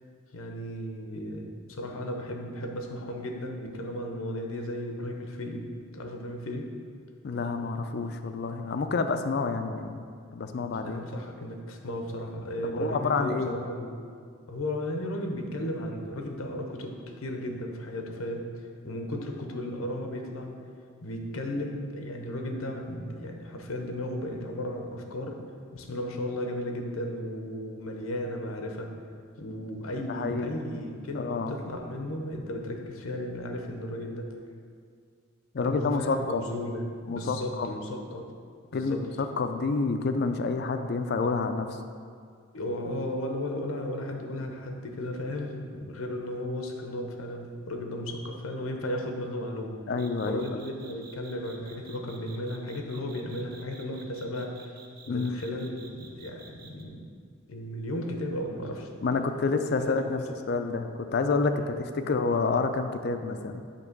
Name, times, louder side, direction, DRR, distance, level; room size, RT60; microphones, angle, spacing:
voice 1, 0.3-5.7 5.9-6.7 10.7-13.9 14.5-20.5 21.0-25.4 25.7-28.9 29.4-34.3 35.6-38.2 38.7-39.0 42.5-49.7 50.3-54.7 55.1-57.0 57.5-58.9 59.8-60.3 61.5-61.7, left 1 dB, 85° left, 3 dB, 0.8 m, -35 dB
voice 2, 7.2-10.1 10.3-11.0 12.6-13.6 30.1-30.6 31.1-31.5 35.5-36.4 37.1-37.7 38.7-41.8 49.9-50.4 55.1-55.4 59.0-60.2 60.5-63.6, left 4 dB, 50° left, 8 dB, 0.4 m, -28 dB
sound 1, 50.0-56.8, right 5 dB, 50° right, 0.6 m, -51 dB
8.4 x 3.0 x 5.9 m, 2.2 s
head